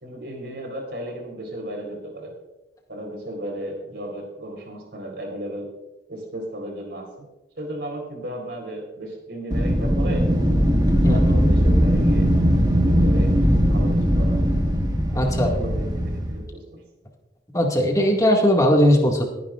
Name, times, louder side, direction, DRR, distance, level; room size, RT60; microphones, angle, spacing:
voice 1, 0.0-2.3 2.9-5.7 6.1-7.3 7.6-10.3 11.1-12.3 12.8-13.3 13.7-14.4 15.1-16.8, right 1 dB, 65° right, 3 dB, 4.1 m, -34 dB
Wind, 9.5-16.4, equal, 20° right, 1.5 m, -19 dB
voice 2, 15.1-15.5 17.5-19.3, equal, 20° left, 0 dB, 2.1 m, -18 dB
21.0 x 10.5 x 2.5 m, 1.0 s
head